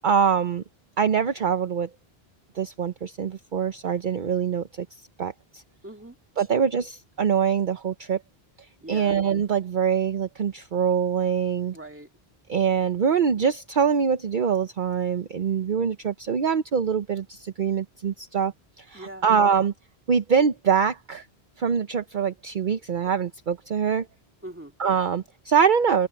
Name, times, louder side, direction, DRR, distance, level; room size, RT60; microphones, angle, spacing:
voice 1, 0.0-0.6 1.0-1.9 2.6-4.9 5.2-5.6 6.4-8.2 8.9-11.8 12.5-19.7 20.1-21.3 21.6-24.1 24.8-26.1, right 7 dB, 55° right, 0.9 m, -24 dB
voice 2, 5.8-6.6 8.8-9.2 11.7-12.1 18.9-19.3 24.4-24.7, right 1 dB, 10° right, 2.1 m, -41 dB
omnidirectional pair, 1.1 m